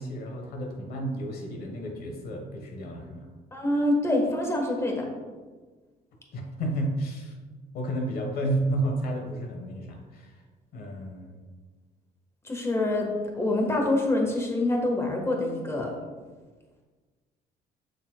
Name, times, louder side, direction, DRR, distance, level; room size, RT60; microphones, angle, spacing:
voice 1, 0.0-3.3 6.3-7.4 7.7-10.4 10.7-11.4, right 1 dB, 65° left, 2 dB, 1.1 m, -31 dB
voice 2, 3.5-5.0 12.4-13.1 13.3-15.9, left 1 dB, 15° left, 1 dB, 1.3 m, -25 dB
6.8 x 6.3 x 2.2 m, 1.4 s
cardioid pair, 110°, 17 cm